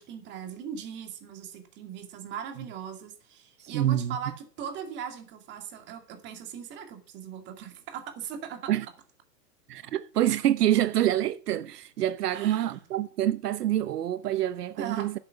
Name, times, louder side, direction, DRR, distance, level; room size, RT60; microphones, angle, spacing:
voice 1, 0.0-8.7 12.3-12.8 14.8-15.1, right 8 dB, 20° right, 2.2 m, -39 dB
voice 2, 3.6-4.2 8.7-8.9 9.7-15.1, right 12 dB, 70° right, 0.9 m, -26 dB
10.5 x 8.7 x 5.7 m
hypercardioid pair, 155°, 48 cm